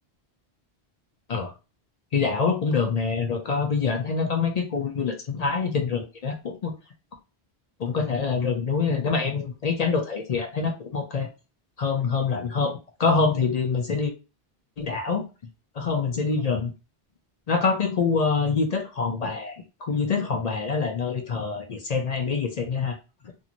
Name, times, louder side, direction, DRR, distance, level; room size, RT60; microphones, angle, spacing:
voice 1, 2.1-6.7 7.8-11.3 11.8-14.1 14.8-15.2 15.8-16.7 17.5-19.6 19.8-22.9, left 5 dB, 50° left, 4 dB, 0.5 m, -25 dB
2.9 x 2.6 x 2.4 m, 0.30 s
omnidirectional pair, 1.1 m